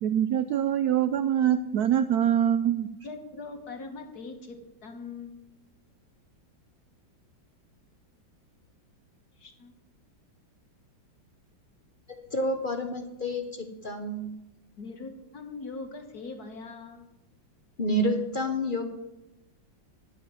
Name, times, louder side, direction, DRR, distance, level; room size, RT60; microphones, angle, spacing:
voice 1, 0.0-2.9, right 10 dB, 75° right, 11 dB, 0.9 m, -24 dB
voice 2, 3.0-5.4 9.4-9.7 14.8-17.0, left 3 dB, 55° left, 5 dB, 1.9 m, -41 dB
voice 3, 12.3-14.3 17.8-18.8, equal, 35° left, 5 dB, 1.0 m, -29 dB
11.5 x 5.8 x 8.9 m, 0.91 s
omnidirectional pair, 2.1 m